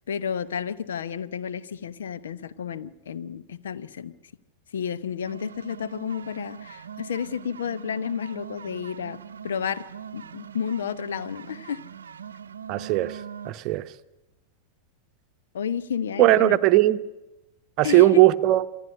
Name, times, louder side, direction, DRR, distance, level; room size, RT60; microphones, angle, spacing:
voice 1, 0.1-4.1 4.7-9.9 10.1-11.8 15.5-16.6 17.8-18.2, left 7 dB, 65° left, 0.9 m, -31 dB
sound 1, 5.2-13.5, right 8 dB, 70° right, 0.7 m, -42 dB
voice 2, 12.7-13.2 13.4-13.9 16.2-17.0 17.8-18.6, right 16 dB, 40° right, 0.9 m, -18 dB
26.5 x 12.0 x 9.7 m
figure-of-eight pair, 90°, 0 cm